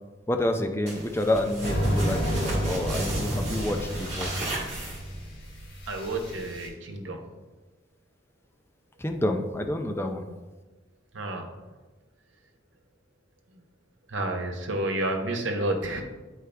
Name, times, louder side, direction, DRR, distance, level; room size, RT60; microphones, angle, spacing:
voice 1, 0.3-4.3 9.0-10.3, left 1 dB, 10° left, 5 dB, 0.4 m, -28 dB
sound 1, 0.9-5.3, right 1 dB, 35° right, 1.8 m, -35 dB
sound 2, 1.6-6.7, equal, 50° left, 1.7 m, -30 dB
voice 2, 5.9-7.2 11.1-11.5 13.5-13.6 14.1-16.0, right 1 dB, 80° right, 3 dB, 1.1 m, -30 dB
8.6 x 4.8 x 3.4 m, 1.2 s
head